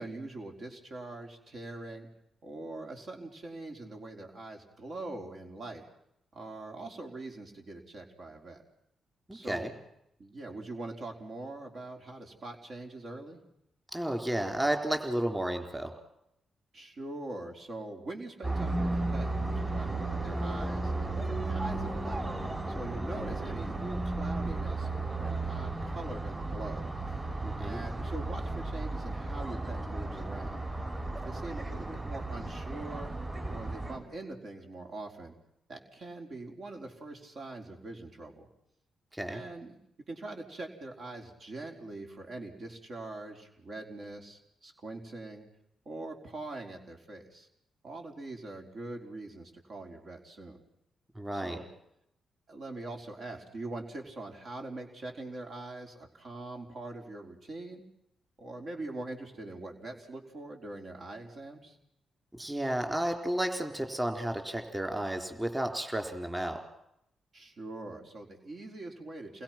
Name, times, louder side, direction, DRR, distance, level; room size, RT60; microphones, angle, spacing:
voice 1, 0.0-2.1 2.4-5.8 6.3-8.6 9.3-9.7 10.2-13.4 16.7-22.2 22.7-27.2 27.5-30.6 31.1-33.1 33.5-35.3 35.7-38.5 39.3-39.8 40.1-45.5 45.8-47.5 47.8-50.6 51.3-51.7 52.5-57.8 58.4-61.8 67.3-69.4, right 2 dB, 60° right, 2 dB, 4.4 m, -43 dB
voice 2, 9.3-9.7 13.9-15.9 27.4-27.8 39.1-39.4 51.2-51.6 62.3-66.6, right 1 dB, 15° right, 5 dB, 3.9 m, -32 dB
sound 1, 18.4-34.0, right 2 dB, 30° right, 6.3 m, -34 dB
29.5 x 21.0 x 6.0 m, 0.79 s
cardioid pair, 65°, 0 cm